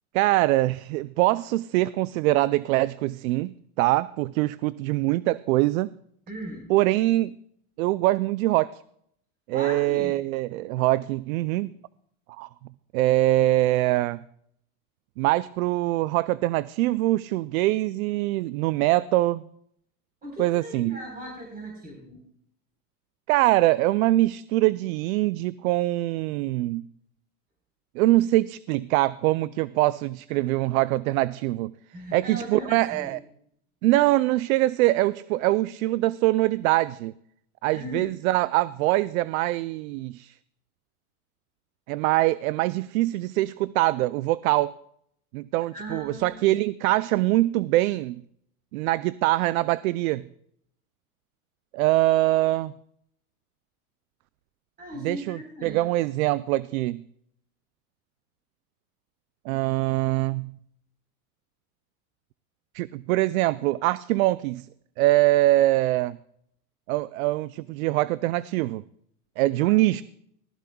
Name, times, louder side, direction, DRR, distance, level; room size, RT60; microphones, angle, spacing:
voice 1, 0.1-5.9 6.7-7.3 7.8-8.8 9.5-11.7 12.3-12.5 12.9-14.2 15.2-19.4 20.4-21.0 23.3-26.9 28.0-31.7 32.1-33.2 33.8-37.1 37.6-40.3 41.9-44.7 45.3-48.2 48.7-50.3 51.7-52.7 55.0-57.0 59.5-60.6 62.7-64.7 65.0-66.2 66.9-68.8 69.4-70.0, right 17 dB, 70° right, 17 dB, 0.5 m, -23 dB
voice 2, 6.3-6.7 9.5-10.2 20.2-22.2 30.3-30.4 31.9-33.2 37.7-38.1 45.7-46.4 54.8-55.8 69.6-69.8, equal, 20° right, -1 dB, 4.0 m, -38 dB
19.0 x 13.0 x 2.3 m, 0.69 s
supercardioid pair, 120°, 44 cm